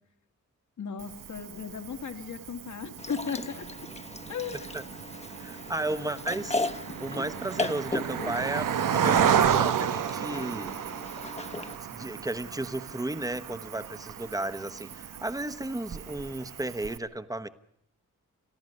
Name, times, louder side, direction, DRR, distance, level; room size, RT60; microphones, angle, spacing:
voice 1, 0.8-3.9 4.3-4.7, left 6 dB, 65° left, 7 dB, 2.1 m, -36 dB
Cricket, 1.0-17.0, right 8 dB, 85° right, 1.0 m, -32 dB
sound 1, 3.0-11.8, left 3 dB, 20° left, 1.1 m, -37 dB
voice 2, 5.4-6.7 7.0-10.7 11.9-17.5, right 1 dB, 10° right, 10 dB, 1.1 m, -34 dB
30.0 x 14.0 x 6.5 m, 0.75 s
wide cardioid pair, 135°, 31 cm